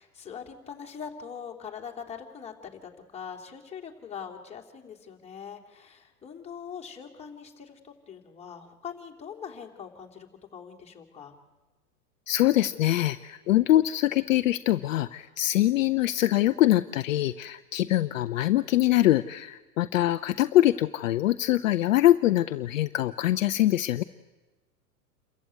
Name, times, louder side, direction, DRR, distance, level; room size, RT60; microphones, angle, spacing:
voice 1, 0.0-11.4, left 7 dB, 15° left, -1 dB, 3.2 m, -42 dB
voice 2, 12.3-24.0, left 14 dB, 55° left, 10 dB, 0.8 m, -23 dB
28.5 x 15.0 x 9.5 m, 1.2 s
figure-of-eight pair, 100°, 46 cm